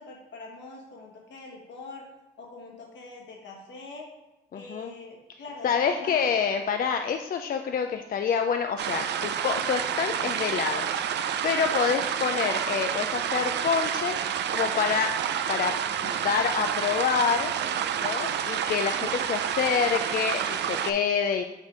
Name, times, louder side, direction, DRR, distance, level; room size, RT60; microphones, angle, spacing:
voice 1, 0.0-2.1 2.4-4.1 4.5-6.3, left 3 dB, 65° left, 0 dB, 1.5 m, -44 dB
voice 2, 4.5-4.9 5.6-15.2 15.5-15.8 16.0-17.5 18.0-21.4, left 6 dB, 45° left, 6 dB, 0.4 m, -27 dB
sound 1, 8.8-20.9, right 9 dB, 60° right, 0.4 m, -29 dB
7.2 x 2.6 x 5.0 m, 1.0 s
cardioid pair, 90°, 20 cm